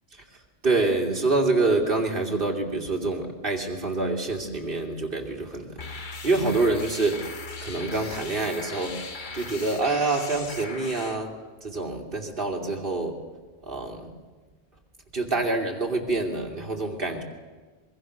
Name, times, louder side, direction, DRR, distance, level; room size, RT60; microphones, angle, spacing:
voice 1, 0.6-7.3 7.6-11.3 11.6-13.2 13.6-14.2 15.1-17.2, right 3 dB, 55° right, 1 dB, 3.0 m, -26 dB
sound 1, 5.8-11.2, left 4 dB, 50° left, 1.3 m, -38 dB
23.5 x 22.0 x 6.5 m, 1.4 s
omnidirectional pair, 1.1 m